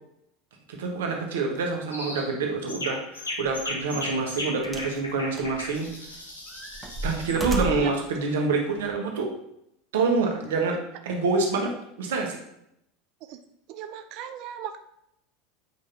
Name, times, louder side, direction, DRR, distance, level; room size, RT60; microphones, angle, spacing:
voice 1, 0.7-5.9 7.0-9.3 9.9-12.4, right 4 dB, 70° right, 1 dB, 1.3 m, -27 dB
sound 1, 1.9-2.3 2.7-7.4, left 2 dB, 85° left, 1.2 m, -36 dB
sound 2, 3.4-3.6 4.6-5.0 5.4-6.1 6.5-8.0 8.8-8.9, right 2 dB, 15° right, 1.2 m, -33 dB
voice 2, 13.7-14.8, right 9 dB, 50° right, 8 dB, 0.5 m, -37 dB
8.2 x 5.0 x 2.9 m, 0.78 s
figure-of-eight pair, 80°, 0 cm